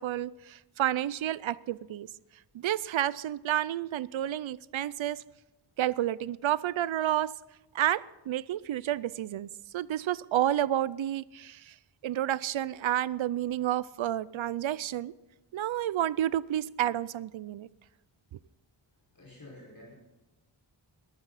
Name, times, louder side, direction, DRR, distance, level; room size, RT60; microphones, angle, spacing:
voice 1, 0.0-2.1 2.5-5.2 5.8-7.3 7.7-11.7 12.0-15.1 15.5-17.7, right 12 dB, 85° right, 20 dB, 0.5 m, -30 dB
voice 2, 19.1-20.0, left 1 dB, 45° left, -4 dB, 5.3 m, -49 dB
21.5 x 12.0 x 4.1 m, 1.0 s
wide cardioid pair, 105°, 46 cm